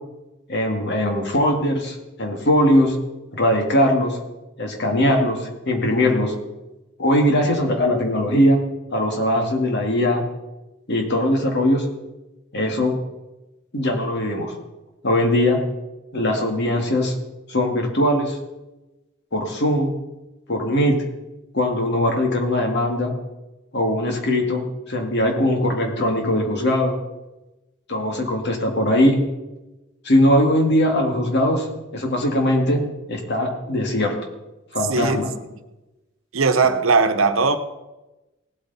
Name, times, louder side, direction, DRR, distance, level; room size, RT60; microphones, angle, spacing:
voice 1, 0.5-2.9 3.3-4.2 4.6-6.3 7.0-8.6 8.9-10.2 10.9-11.9 12.5-13.0 13.7-14.5 15.0-15.6 16.1-17.1 17.5-18.4 19.3-19.9 20.5-21.0 21.5-23.1 23.7-27.0 27.9-29.2 30.0-31.7 31.9-32.8 33.1-34.2 34.7-35.3, left 1 dB, 60° left, 2 dB, 2.2 m, -20 dB
voice 2, 34.9-35.3 36.3-37.6, right 4 dB, 90° right, 9 dB, 1.0 m, -19 dB
17.5 x 8.2 x 4.1 m, 1.0 s
head